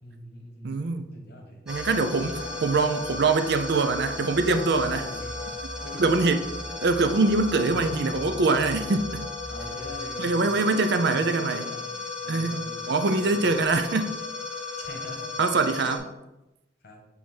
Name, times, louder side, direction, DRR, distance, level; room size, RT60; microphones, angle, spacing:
voice 1, 0.0-1.7 2.4-2.6 4.9-6.5 7.7-8.3 9.5-11.9 12.2-13.7 14.8-15.4 16.8-17.0, left 1 dB, 60° left, 2 dB, 1.2 m, -42 dB
voice 2, 0.6-1.2 1.7-5.1 6.0-6.4 6.8-9.3 10.2-11.6 12.3-12.6 12.9-14.2 15.4-16.1, right 3 dB, 65° right, 8 dB, 0.5 m, -24 dB
sound 1, 1.7-16.0, left 3 dB, 5° right, 0.8 m, -35 dB
6.1 x 3.5 x 4.4 m, 0.97 s
head